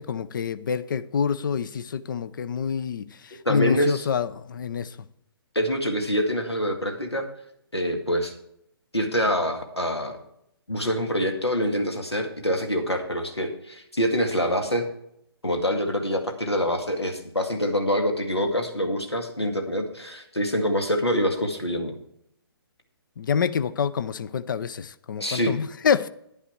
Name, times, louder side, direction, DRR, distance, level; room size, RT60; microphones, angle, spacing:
voice 1, 0.0-5.0 23.2-26.1, left 7 dB, 50° left, 0.6 m, -27 dB
voice 2, 3.5-4.0 5.6-7.3 7.7-8.3 8.9-10.1 10.7-14.9 15.4-22.0 25.2-25.5, equal, 90° left, 2.1 m, -25 dB
10.0 x 10.0 x 4.5 m
figure-of-eight pair, 130°, 13 cm